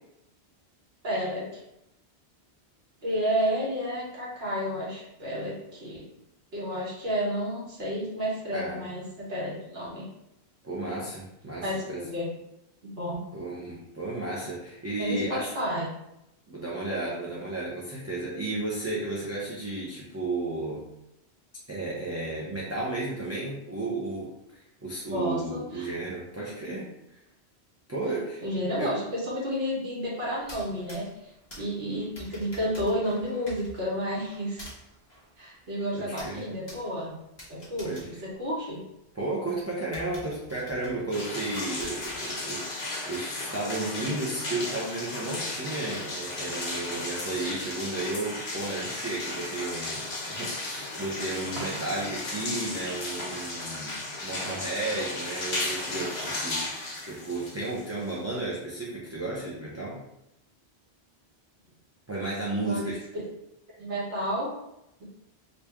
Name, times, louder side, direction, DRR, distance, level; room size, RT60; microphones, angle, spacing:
voice 1, 1.0-1.6 3.0-6.1 6.5-10.1 11.6-12.3 12.9-13.2 15.0-15.9 25.1-25.9 28.4-31.3 31.6-34.6 35.4-37.2 37.5-38.8 62.6-62.9 63.8-64.5, equal, 65° right, -6 dB, 1.5 m, -31 dB
voice 2, 10.6-12.0 13.3-15.5 16.5-20.8 21.7-24.3 24.8-26.9 27.9-28.4 28.8-29.0 35.9-36.4 37.8-38.1 39.1-56.6 57.1-60.0 62.1-63.0, right 2 dB, 20° right, -6 dB, 0.5 m, -33 dB
sound 1, 30.3-39.1 39.5-39.6 39.9-42.7, equal, 25° left, 1.2 m, -48 dB
sound 2, 41.1-58.4, left 2 dB, 70° left, 1.1 m, -35 dB
Coin (dropping), 51.5-52.3 58.4-58.6, right 3 dB, 80° right, 0.9 m, -43 dB
3.1 x 2.6 x 3.4 m, 0.86 s
omnidirectional pair, 1.1 m